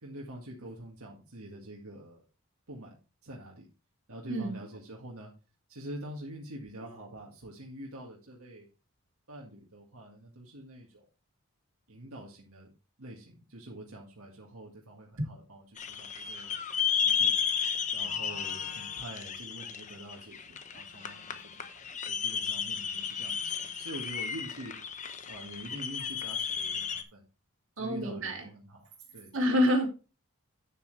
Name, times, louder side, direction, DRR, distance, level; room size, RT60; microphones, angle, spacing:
voice 1, 0.0-2.2 2.7-3.0 3.2-3.7 4.1-5.3 5.7-8.7 9.3-11.1 11.9-12.7 13.0-16.5 16.9-17.3 17.9-21.3 21.6-21.7 22.1-24.7 25.3-27.2 27.8-29.7, right 1 dB, 80° right, -2 dB, 1.9 m, -45 dB
voice 2, 4.3-4.6 27.8-28.5 29.3-29.9, equal, 60° right, 2 dB, 2.5 m, -27 dB
sound 1, 15.8-27.0, left 7 dB, 35° left, 0.9 m, -33 dB
9.2 x 7.5 x 3.3 m, 0.32 s
head